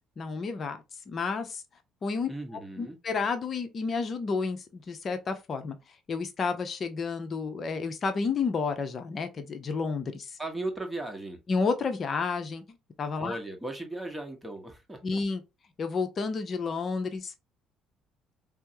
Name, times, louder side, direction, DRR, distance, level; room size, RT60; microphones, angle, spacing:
voice 1, 0.2-0.8 1.1-1.6 2.0-2.3 2.8-5.8 6.1-10.3 11.5-12.6 13.0-13.4 15.0-15.4 15.8-17.3, left 4 dB, 40° left, 0.7 m, -30 dB
voice 2, 2.3-3.0 10.4-11.4 13.2-15.2, right 2 dB, 10° right, 1.1 m, -37 dB
4.4 x 2.1 x 2.7 m
figure-of-eight pair, 50°, 0 cm